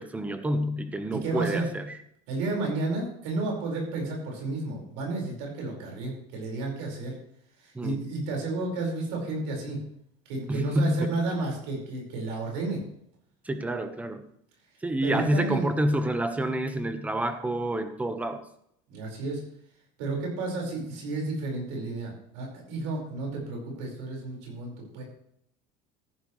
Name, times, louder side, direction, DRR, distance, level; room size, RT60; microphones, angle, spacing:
voice 1, 0.0-2.0 7.7-8.1 10.5-11.1 13.4-14.2 14.8-18.4, right 1 dB, 10° right, 9 dB, 1.0 m, -28 dB
voice 2, 1.2-1.7 2.3-7.1 7.8-9.8 10.3-12.8 15.0-15.7 18.9-19.4 20.0-25.0, right 2 dB, 85° right, 0 dB, 5.0 m, -31 dB
14.0 x 11.0 x 3.2 m, 0.73 s
cardioid pair, 145°, 14 cm